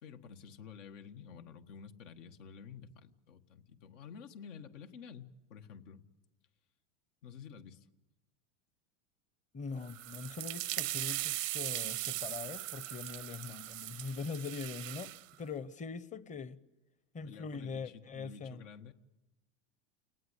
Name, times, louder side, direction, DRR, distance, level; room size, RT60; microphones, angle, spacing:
voice 1, 0.0-6.0 7.2-7.9 17.2-18.9, left 6 dB, 75° left, 1.7 m, -51 dB
voice 2, 9.5-15.1 15.4-16.6 17.1-18.6, left 5 dB, 20° left, 0.8 m, -42 dB
sound 1, 9.8-15.2, right 18 dB, 85° right, 0.8 m, -39 dB
29.0 x 19.0 x 8.2 m
supercardioid pair, 125°, 37 cm